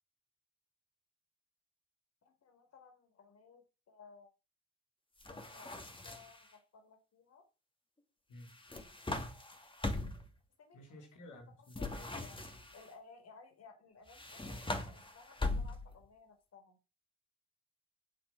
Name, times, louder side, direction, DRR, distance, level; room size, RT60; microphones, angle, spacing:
voice 1, 2.2-4.3 5.3-7.4 10.6-11.0 11.8-12.4 12.7-16.8, left 5 dB, 55° left, 4.4 m, -59 dB
sound 1, 5.2-6.5 8.5-10.3 11.7-12.9 14.1-16.0, left 2 dB, 15° left, 2.6 m, -40 dB
voice 2, 10.7-12.3, left 1 dB, 80° left, 3.8 m, -53 dB
10.5 x 8.0 x 6.2 m
cardioid pair, 90°, 30 cm